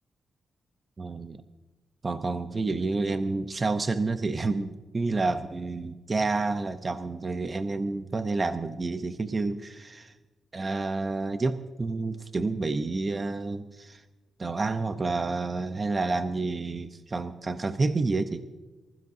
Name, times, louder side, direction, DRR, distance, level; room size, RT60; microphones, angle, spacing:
voice 1, 1.0-1.4 2.0-10.1 10.5-14.0 14.4-18.5, right 3 dB, 25° right, 8 dB, 0.6 m, -29 dB
25.0 x 15.5 x 2.6 m, 1.2 s
wide cardioid pair, 145°, 0 cm